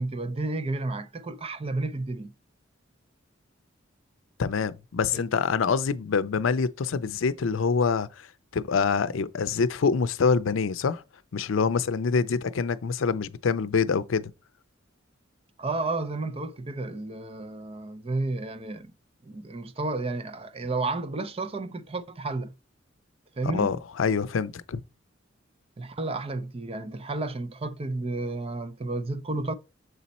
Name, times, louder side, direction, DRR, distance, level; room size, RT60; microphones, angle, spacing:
voice 1, 0.0-2.3 5.1-5.2 15.6-18.9 19.2-22.5 23.4-23.8 25.8-29.5, right 2 dB, 30° right, 0.5 m, -32 dB
voice 2, 4.4-8.1 8.5-11.0 11.3-14.3 23.5-24.8, left 5 dB, 85° left, 0.5 m, -25 dB
6.7 x 4.1 x 4.1 m
head